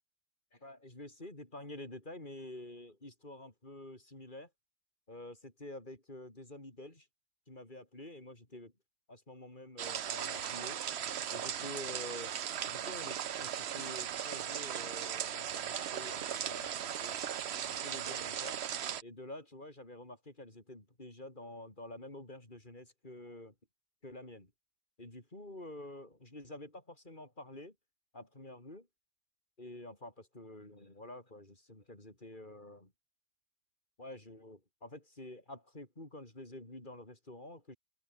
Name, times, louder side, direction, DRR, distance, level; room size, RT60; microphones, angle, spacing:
voice 1, 0.5-4.5 5.1-7.1 7.5-8.7 9.1-10.8 11.3-12.3 12.7-17.2 17.7-18.6 19.0-23.5 24.0-24.5 25.0-27.8 28.1-28.9 29.6-32.9 34.0-37.8, left 1 dB, 35° left, 5.6 m, -48 dB
sound 1, 9.8-19.0, right 9 dB, 55° right, 0.9 m, -38 dB
open air
omnidirectional pair, 1.5 m